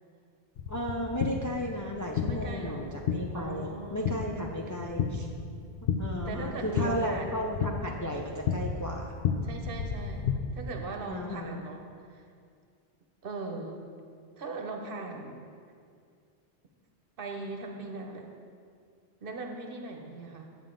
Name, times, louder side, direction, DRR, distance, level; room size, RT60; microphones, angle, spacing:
sound 1, 0.6-10.4, left 6 dB, 65° left, 0.8 m, -33 dB
voice 1, 0.7-5.3 5.8-9.1 11.1-11.6, equal, 30° left, 0 dB, 0.4 m, -34 dB
voice 2, 2.3-2.8 3.3-4.1 4.5-5.0 6.3-7.3 9.4-12.3 13.2-13.8 14.4-15.4 17.2-18.3 19.2-20.5, right 3 dB, 60° right, 2 dB, 1.0 m, -39 dB
8.8 x 7.4 x 3.7 m, 2.3 s
omnidirectional pair, 1.1 m